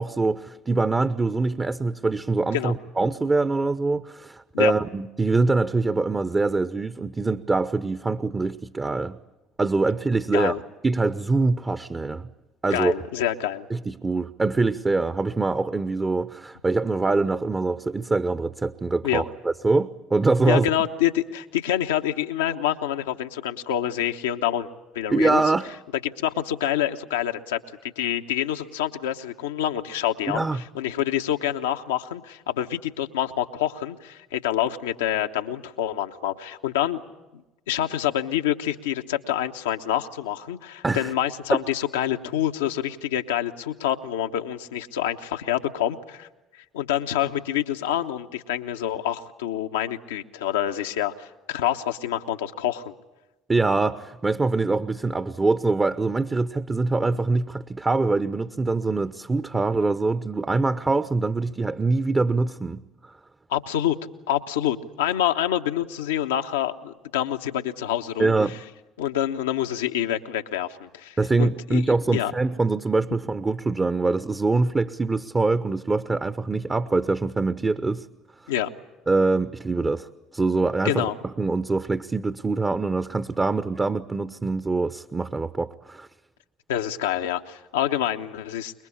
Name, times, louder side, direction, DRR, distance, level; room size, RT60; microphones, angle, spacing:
voice 1, 0.0-9.2 9.6-10.6 10.8-12.3 12.6-12.9 13.7-20.7 25.1-25.7 30.3-30.6 40.8-41.1 41.5-41.6 53.5-62.8 68.2-68.6 71.2-78.0 79.1-81.1 81.4-86.1, right 3 dB, 25° right, 12 dB, 1.0 m, -24 dB
voice 2, 12.7-13.7 19.0-19.2 20.5-24.7 24.9-25.4 26.2-27.6 28.0-37.0 37.7-46.3 46.7-52.9 63.5-64.0 64.3-68.3 69.0-71.8 72.1-72.3 78.5-78.7 80.8-81.1 86.7-88.7, left 11 dB, 80° left, 5 dB, 1.1 m, -27 dB
25.0 x 22.5 x 8.6 m, 1.0 s
hypercardioid pair, 60°, 0 cm